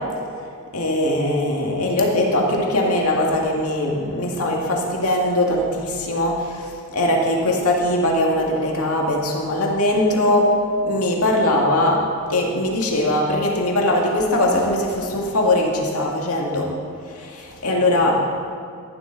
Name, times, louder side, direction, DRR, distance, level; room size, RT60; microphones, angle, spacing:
voice 1, 0.7-6.6 6.9-10.5 10.8-12.0 12.3-16.7 17.2-18.2, left 1 dB, 85° left, -1 dB, 2.1 m, -20 dB
13.5 x 12.0 x 4.0 m, 2.2 s
head